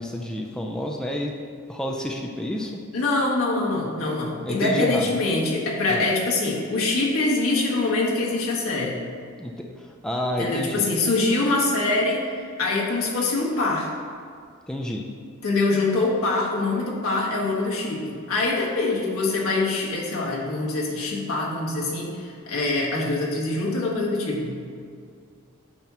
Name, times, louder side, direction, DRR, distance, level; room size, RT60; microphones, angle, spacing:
voice 1, 0.0-1.4 1.7-2.8 4.4-5.1 5.9-6.1 9.4-10.9 14.7-15.0, left 1 dB, 5° left, 1 dB, 0.4 m, -29 dB
voice 2, 2.9-9.0 10.4-13.9 15.4-24.6, left 2 dB, 90° left, -3 dB, 1.5 m, -24 dB
8.7 x 3.0 x 6.0 m, 2.2 s
head